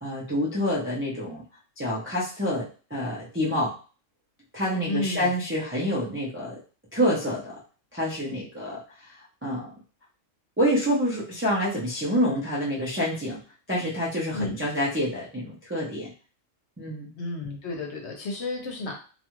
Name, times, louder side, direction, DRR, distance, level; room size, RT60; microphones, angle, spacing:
voice 1, 0.0-1.4 1.8-3.7 4.5-6.6 6.9-7.5 7.9-9.1 9.4-9.7 10.6-13.4 13.7-16.1 16.8-17.1, equal, 15° right, -7 dB, 0.5 m, -27 dB
voice 2, 4.9-5.3 14.3-14.7 17.1-18.9, left 2 dB, 60° left, 1 dB, 1.0 m, -32 dB
2.6 x 2.4 x 3.0 m, 0.37 s
omnidirectional pair, 1.4 m